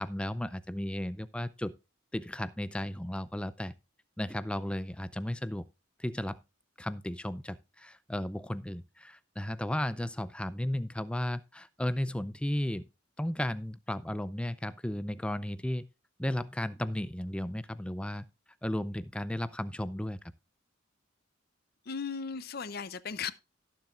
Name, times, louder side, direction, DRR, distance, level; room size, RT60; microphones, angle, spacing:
voice 1, 0.0-1.7 2.1-3.7 4.2-5.7 6.0-6.4 6.8-12.8 13.2-15.9 16.2-18.2 18.6-20.2, left 1 dB, 5° left, 0.4 m, -34 dB
voice 2, 21.9-23.3, left 6 dB, 50° left, 0.6 m, -36 dB
17.5 x 7.3 x 2.4 m
head